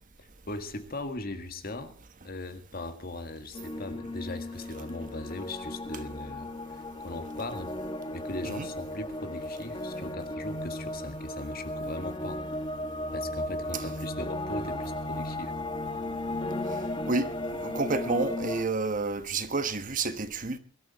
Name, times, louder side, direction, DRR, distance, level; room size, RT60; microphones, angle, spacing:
voice 1, 0.2-1.9 2.2-7.7 8.1-12.4 13.1-15.5, left 2 dB, 45° left, 1.8 m, -39 dB
sound 1, 3.5-18.6, left 1 dB, 25° left, 1.2 m, -35 dB
voice 2, 17.1-20.6, right 3 dB, 40° right, 1.2 m, -30 dB
22.5 x 13.0 x 4.2 m
head